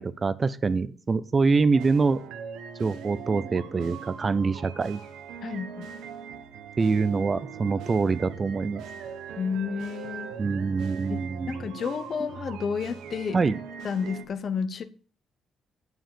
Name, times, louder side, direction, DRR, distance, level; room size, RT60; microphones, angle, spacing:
voice 1, 0.0-2.2 2.8-5.0 6.8-8.8 10.4-11.7 13.3-13.6, right 4 dB, 35° right, 0.6 m, -25 dB
sound 1, 1.7-14.2, right 7 dB, 90° right, 1.1 m, -41 dB
voice 2, 5.4-5.9 9.4-10.3 11.1-13.4 13.8-14.8, left 6 dB, 55° left, 0.8 m, -31 dB
7.2 x 6.3 x 6.7 m
cardioid pair, 90°, 0 cm